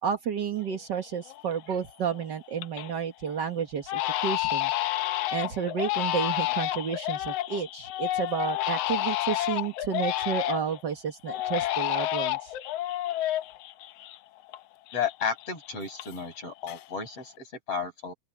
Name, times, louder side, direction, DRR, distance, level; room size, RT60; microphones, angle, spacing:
voice 1, 0.0-4.7 5.3-12.5, right 7 dB, 45° right, 1.5 m, -31 dB
Crying sobbing, 0.7-0.8 1.3-1.7 2.1-3.0 3.3-3.4 3.9-10.8 11.3-14.6 14.9-16.4 16.6-17.2, left 15 dB, 70° left, 1.5 m, -30 dB
voice 2, 14.9-18.1, left 6 dB, 50° left, 7.1 m, -33 dB
open air
omnidirectional pair, 3.5 m